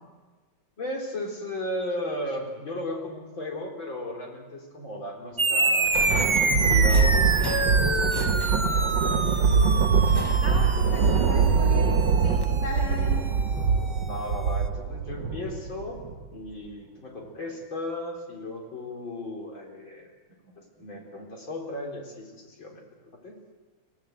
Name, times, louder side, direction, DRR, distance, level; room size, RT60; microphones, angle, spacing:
voice 1, 0.8-5.9 6.2-7.5 7.9-9.6 14.0-16.0 16.3-20.1 20.8-22.8 23.2-23.4, left 1 dB, 75° left, 0 dB, 4.7 m, -36 dB
sound 1, 5.4-14.3, right 3 dB, 40° right, 0.4 m, -28 dB
Thunder, 5.5-16.3, right 5 dB, 70° right, 1.7 m, -23 dB
Subway metro underground, 5.8-12.5, left 1 dB, 25° left, 0.5 m, -36 dB
voice 2, 10.4-11.9 12.2-13.1, left 1 dB, 60° left, -3 dB, 4.5 m, -36 dB
24.5 x 17.0 x 7.7 m, 1.3 s
omnidirectional pair, 2.2 m